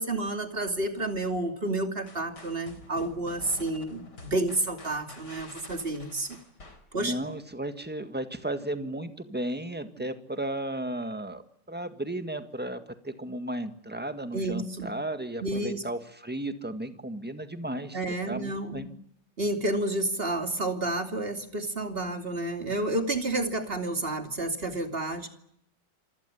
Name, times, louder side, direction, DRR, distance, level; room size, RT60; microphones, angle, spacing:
voice 1, 0.0-6.4 6.9-7.1 14.3-14.9 15.4-15.8 17.9-18.9 19.4-25.3, right 2 dB, 30° right, 6 dB, 2.9 m, -30 dB
sound 1, 2.1-7.3, left 2 dB, 65° left, 4.7 m, -49 dB
voice 2, 7.0-11.4 11.7-18.0 18.3-18.9, right 1 dB, 5° right, 9 dB, 1.6 m, -34 dB
27.0 x 16.0 x 10.0 m, 0.73 s
omnidirectional pair, 2.0 m